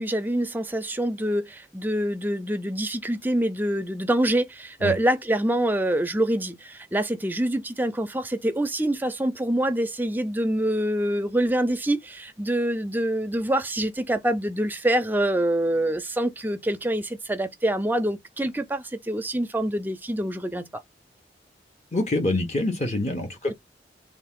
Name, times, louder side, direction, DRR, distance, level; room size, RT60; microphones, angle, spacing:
voice 1, 0.0-20.8, right 1 dB, 10° right, 0.4 m, -25 dB
voice 2, 21.9-23.5, left 2 dB, 40° left, 0.9 m, -25 dB
3.4 x 2.4 x 3.6 m
head